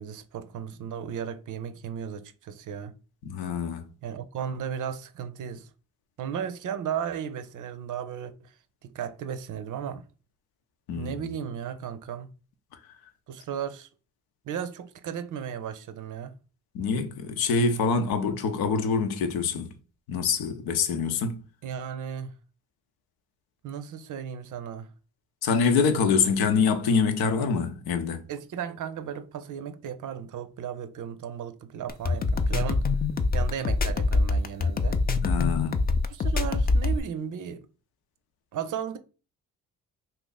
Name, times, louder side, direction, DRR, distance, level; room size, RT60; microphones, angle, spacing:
voice 1, 0.0-2.9 4.0-5.7 6.2-8.5 8.8-10.1 10.9-12.3 13.3-13.9 14.5-16.4 21.6-22.3 23.6-24.9 28.3-32.8 33.3-35.0 36.1-37.7 38.5-39.0, right 8 dB, 55° right, 0.5 m, -35 dB
voice 2, 3.2-3.9 10.9-11.2 16.7-19.8 20.1-21.4 25.4-28.2 35.2-35.8, left 5 dB, 75° left, 0.7 m, -25 dB
sound 1, 31.9-37.0, left 3 dB, 25° left, 0.4 m, -24 dB
2.8 x 2.5 x 3.9 m
supercardioid pair, 50°, 37 cm